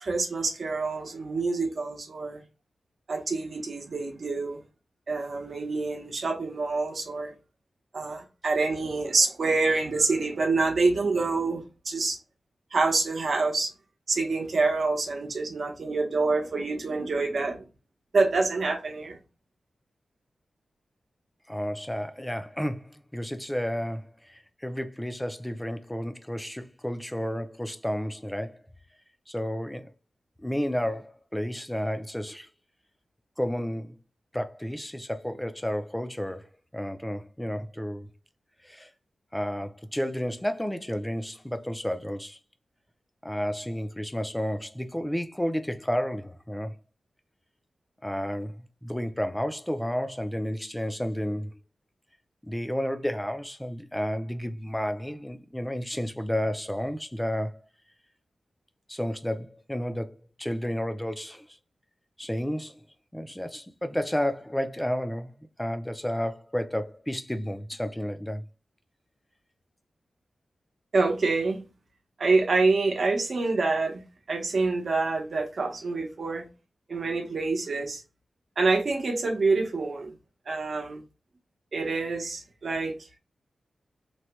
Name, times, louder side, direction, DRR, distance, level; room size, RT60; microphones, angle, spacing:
voice 1, 0.0-2.4 3.1-4.6 5.1-7.3 7.9-12.2 12.7-13.7 14.1-17.6 18.1-19.2 70.9-71.6 72.2-74.0 74.3-76.4 76.9-78.0 78.6-80.1 80.5-81.0 81.7-82.9, right 3 dB, 60° right, 0.8 m, -26 dB
voice 2, 21.5-28.6 29.3-29.9 30.4-32.5 33.4-34.0 34.3-36.5 36.7-38.1 38.6-38.9 39.3-42.4 43.2-46.7 48.0-51.5 52.4-57.5 58.9-61.5 62.2-62.8 63.1-68.4, equal, 5° left, 0.4 m, -31 dB
3.1 x 2.2 x 2.9 m
wide cardioid pair, 110°, 0 cm